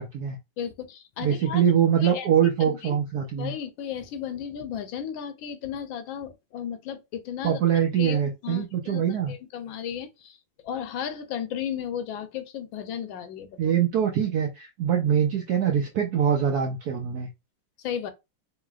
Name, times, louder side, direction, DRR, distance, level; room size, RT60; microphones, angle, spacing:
voice 1, 0.0-0.4 1.2-3.5 7.4-9.3 13.6-17.3, right 8 dB, 75° right, 0.9 m, -23 dB
voice 2, 0.6-1.6 2.0-2.3 2.6-2.9 3.3-10.4 10.6-13.7 17.8-18.1, left 8 dB, 75° left, 1.3 m, -35 dB
3.6 x 3.3 x 2.3 m
omnidirectional pair, 2.2 m